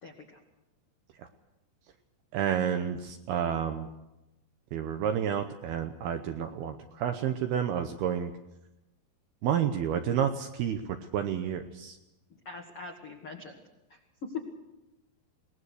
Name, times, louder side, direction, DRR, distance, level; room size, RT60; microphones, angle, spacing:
voice 1, 0.0-0.4 12.4-13.6 13.9-14.0 14.3-14.4, left 5 dB, 65° left, 2 dB, 1.4 m, -41 dB
voice 2, 2.3-3.9 4.7-8.3 9.4-10.8 11.1-12.0, right 9 dB, 75° right, 7 dB, 2.4 m, -30 dB
22.5 x 19.0 x 6.4 m, 0.96 s
omnidirectional pair, 5.4 m